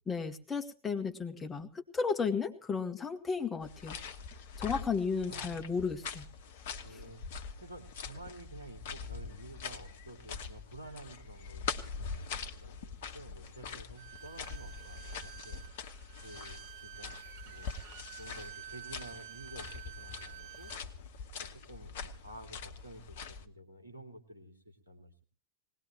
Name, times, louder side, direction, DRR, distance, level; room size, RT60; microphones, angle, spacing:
voice 1, 0.1-4.0 4.6-6.3 6.9-7.0, left 5 dB, 15° left, 4 dB, 2.0 m, -34 dB
sound 1, 3.6-23.5, left 5 dB, 55° left, 1.3 m, -44 dB
voice 2, 5.3-5.7 6.8-15.6 16.2-20.7 21.3-25.2, right 1 dB, 80° right, 3 dB, 2.9 m, -51 dB
Bowed string instrument, 14.0-20.8, right 12 dB, 50° right, 0.7 m, -50 dB
20.0 x 19.0 x 3.2 m, 0.35 s
figure-of-eight pair, 90°, 0 cm